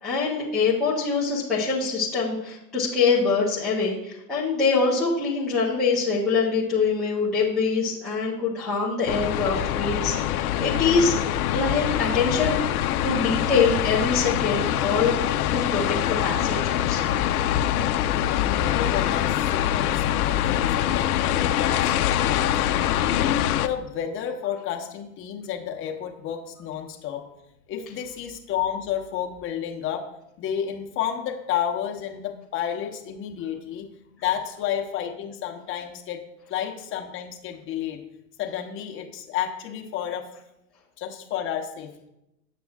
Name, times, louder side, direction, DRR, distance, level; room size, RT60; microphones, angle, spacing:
voice 1, 0.0-11.2 11.5-12.6 13.0-15.1 15.5-17.1, left 4 dB, ahead, -10 dB, 0.4 m, -24 dB
sound 1, 9.1-23.7, left 11 dB, 65° left, 0.6 m, -24 dB
voice 2, 18.2-22.4 23.0-27.2 27.7-30.0 30.4-33.9 34.2-36.2 36.5-38.0 38.4-40.3 41.0-42.1, left 9 dB, 25° left, 3 dB, 1.0 m, -31 dB
8.5 x 6.0 x 3.5 m, 0.87 s
hypercardioid pair, 130°, 49 cm